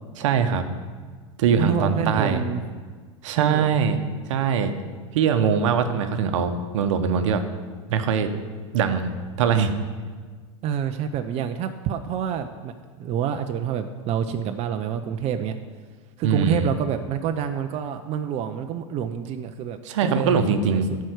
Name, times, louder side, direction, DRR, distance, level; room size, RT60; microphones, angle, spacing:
voice 1, 0.2-0.7 1.4-2.4 3.2-4.0 4.3-4.7 5.1-7.4 7.9-8.3 8.7-9.7 16.2-16.7 19.8-20.9, right 6 dB, 75° right, 8 dB, 0.9 m, -22 dB
voice 2, 1.6-2.6 3.4-3.7 10.6-12.7 13.0-15.6 16.2-20.4 20.7-21.0, right 8 dB, 40° right, 7 dB, 0.6 m, -28 dB
11.5 x 4.7 x 6.5 m, 1.5 s
hypercardioid pair, 105°, 16 cm